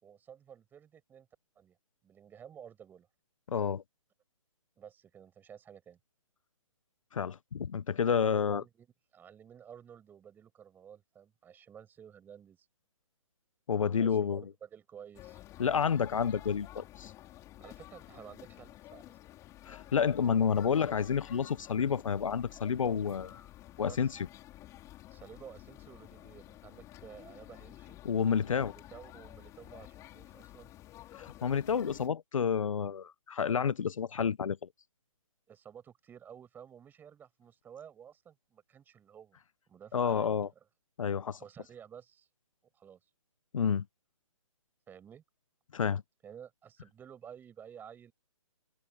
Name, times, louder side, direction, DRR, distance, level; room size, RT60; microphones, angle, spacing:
voice 1, 0.0-1.3 1.6-1.8 2.0-3.1 4.8-6.0 8.1-8.9 9.1-12.7 14.0-15.4 17.6-19.2 23.8-24.1 25.1-28.0 28.6-30.7 35.5-39.4 39.7-40.3 41.4-42.3 42.7-43.0 44.9-45.2 46.2-48.1, right 8 dB, 10° right, 6.4 m, -52 dB
voice 2, 3.5-3.8 7.1-8.6 13.7-14.4 15.6-17.1 19.7-23.5 23.8-24.3 28.0-28.7 31.1-34.7 39.9-40.5 41.0-41.4 43.5-43.8 45.7-46.0, left 7 dB, 70° left, 0.9 m, -30 dB
sound 1, 15.1-32.1, left 15 dB, 15° left, 5.3 m, -51 dB
hypercardioid pair, 150°, 18 cm